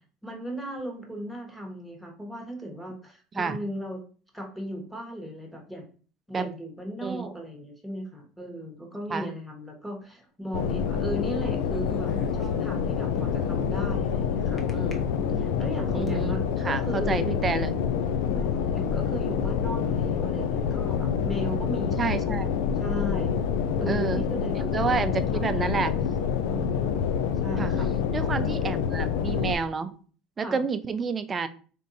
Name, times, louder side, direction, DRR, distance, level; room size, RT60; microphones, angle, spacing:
voice 1, 0.2-4.0 4.3-5.8 6.3-15.1 15.4-17.2 18.2-22.5 22.8-23.4 23.8-26.0 26.5-26.9 27.4-27.9 30.4-30.6, equal, ahead, 0 dB, 1.2 m, -37 dB
sound 1, 10.5-29.6, left 7 dB, 80° left, 0.5 m, -27 dB
sound 2, 11.6-12.9 14.6-14.9 15.5-16.2, left 1 dB, 25° left, 0.8 m, -43 dB
voice 2, 15.9-17.8 22.0-22.7 23.9-24.2 24.6-25.9 27.6-27.7 28.1-30.0 30.4-31.5, right 5 dB, 25° right, 11 dB, 0.4 m, -29 dB
3.6 x 2.6 x 4.0 m, 0.40 s
supercardioid pair, 115°, 0 cm